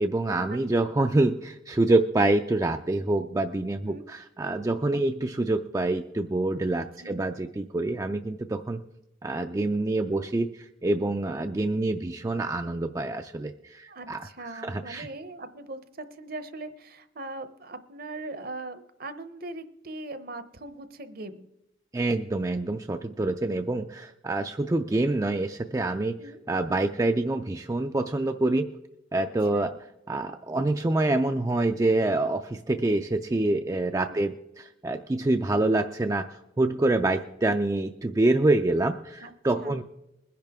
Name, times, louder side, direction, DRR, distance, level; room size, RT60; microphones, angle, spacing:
voice 1, 0.0-8.8 9.2-10.5 10.8-15.1 21.9-26.2 26.5-28.7 29.1-29.7 30.1-36.3 36.6-39.8, right 2 dB, 15° right, 6 dB, 0.3 m, -26 dB
voice 2, 13.9-21.5 26.2-26.4 29.2-29.3 29.5-29.8 34.1-34.3 39.2-39.3 39.6-39.8, right 2 dB, 50° right, 12 dB, 0.8 m, -40 dB
21.0 x 10.5 x 3.6 m, 0.89 s
head